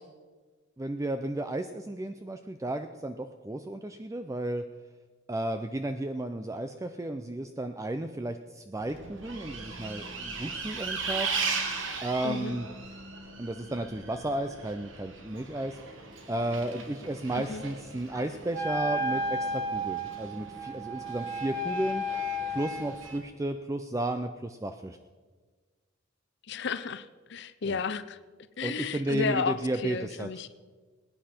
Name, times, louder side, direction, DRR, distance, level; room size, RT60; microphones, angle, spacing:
voice 1, 0.8-4.6 5.3-11.3 12.0-12.7 13.4-15.8 16.3-22.0 22.5-25.0 27.7-27.8 28.6-30.3, right 1 dB, 15° right, 8 dB, 0.4 m, -33 dB
Bus, 8.8-23.2, right 4 dB, 70° right, 1.7 m, -38 dB
voice 2, 12.2-12.6 17.3-17.6 26.5-28.2 28.6-30.5, left 5 dB, 60° left, 13 dB, 0.6 m, -33 dB
Wind instrument woodwind instrument, 18.5-23.1, equal, 45° right, 2.8 m, -33 dB
20.0 x 9.5 x 4.4 m, 1.4 s
head